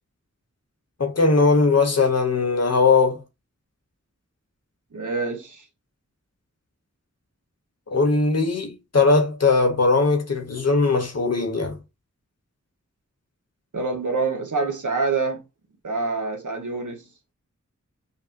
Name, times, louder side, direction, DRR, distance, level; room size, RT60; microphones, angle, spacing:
voice 1, 1.0-3.2 7.9-11.8, left 3 dB, 55° left, 1.1 m, -19 dB
voice 2, 4.9-5.6 13.7-15.4 15.8-17.1, right 4 dB, 75° right, 1.2 m, -26 dB
5.4 x 2.2 x 2.6 m
wide cardioid pair, 65°, 30 cm